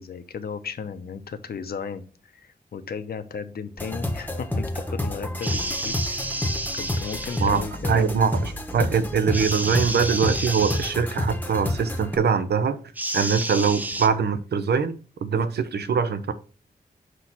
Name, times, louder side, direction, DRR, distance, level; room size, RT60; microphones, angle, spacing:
voice 1, 0.0-2.0 2.3-6.0 6.7-8.0, left 6 dB, 70° left, 10 dB, 0.7 m, -35 dB
sound 1, 3.8-12.2, left 1 dB, 10° left, 0.8 m, -29 dB
sound 2, 5.4-7.6 9.3-11.0 13.0-14.1, right 1 dB, 10° right, 0.4 m, -30 dB
voice 2, 7.4-12.8 13.1-16.3, right 6 dB, 85° right, 11 dB, 0.7 m, -23 dB
6.2 x 3.0 x 5.6 m, 0.36 s
wide cardioid pair, 140°, 17 cm